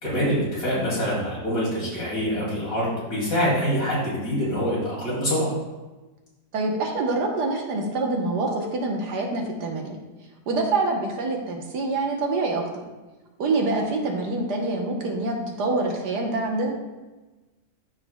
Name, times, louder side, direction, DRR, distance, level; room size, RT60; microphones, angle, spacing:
voice 1, 0.0-5.5, equal, 55° left, -6 dB, 3.1 m, -25 dB
voice 2, 6.5-10.0 10.5-12.8 13.4-16.7, right 2 dB, 85° right, 1 dB, 1.7 m, -26 dB
13.0 x 4.9 x 2.3 m, 1.2 s
omnidirectional pair, 1.7 m